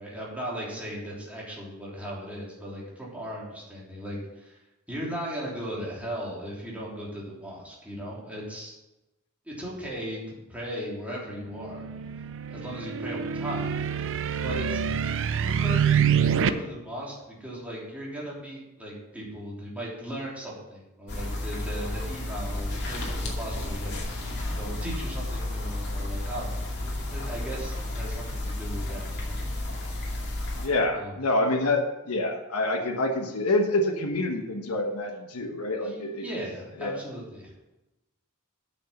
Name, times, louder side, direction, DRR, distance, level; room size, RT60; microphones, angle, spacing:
voice 1, 0.0-4.6 4.9-8.7 9.4-11.9 12.5-13.7 14.4-15.0 15.4-29.4 30.9-31.1 35.8-37.5, equal, 5° right, -5 dB, 3.2 m, -37 dB
sound 1, 11.5-16.5, right 7 dB, 60° right, 0.5 m, -26 dB
sound 2, 21.1-30.7, left 1 dB, 50° left, 2.4 m, -32 dB
voice 2, 30.6-36.3 36.8-37.0, left 2 dB, 85° left, 3 dB, 1.2 m, -27 dB
8.7 x 6.5 x 6.7 m, 0.99 s
head